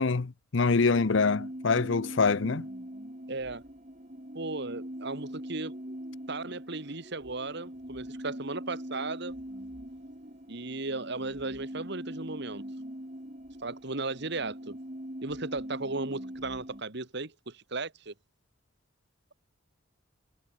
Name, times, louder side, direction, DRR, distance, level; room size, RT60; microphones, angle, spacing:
voice 1, 0.0-2.7, left 4 dB, 65° left, 0.7 m, -25 dB
sound 1, 0.6-16.8, equal, 35° right, 5.1 m, -42 dB
voice 2, 3.3-3.6 4.3-5.8 6.3-9.4 10.5-12.6 13.6-14.8 15.2-18.1, right 3 dB, 60° right, 2.0 m, -36 dB
head